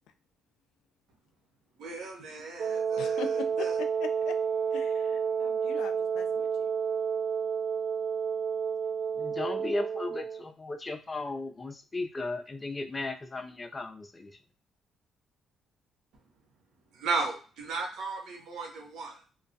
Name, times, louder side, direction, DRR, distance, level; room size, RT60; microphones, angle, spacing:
voice 1, 1.8-3.8 16.9-19.3, right 4 dB, 80° right, 1 dB, 0.8 m, -35 dB
Wind instrument woodwind instrument, 2.6-10.5, right 6 dB, 65° right, 0.3 m, -30 dB
voice 2, 3.0-4.4 4.7-6.7, left 8 dB, 85° left, 7 dB, 0.3 m, -41 dB
voice 3, 9.2-14.4, left 2 dB, 25° left, 5 dB, 0.4 m, -36 dB
2.3 x 2.1 x 2.6 m, 0.36 s
cardioid pair, 90°, 0 cm